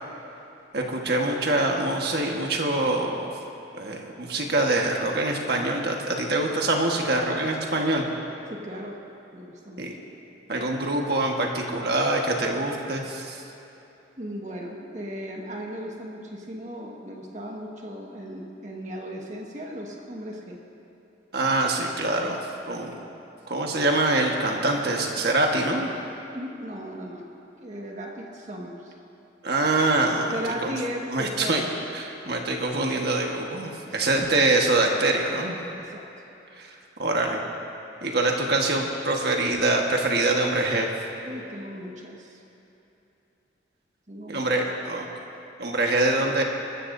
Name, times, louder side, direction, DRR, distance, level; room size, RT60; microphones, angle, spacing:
voice 1, 0.7-3.3 3.7-8.1 9.8-10.0 10.5-13.4 21.3-22.4 22.7-23.0 23.5-25.9 29.4-30.7 31.1-31.6 31.9-35.6 36.5-37.4 38.0-40.9 44.3-45.1 45.6-46.4, right 2 dB, 55° right, 1 dB, 1.5 m, -24 dB
voice 2, 8.5-9.0 9.3-9.9 14.2-20.6 26.3-27.3 27.5-28.9 30.3-31.6 33.8-34.3 35.7-36.0 41.2-42.4 44.1-44.5, equal, 40° right, -1 dB, 1.7 m, -36 dB
23.0 x 14.0 x 2.7 m, 2.9 s
head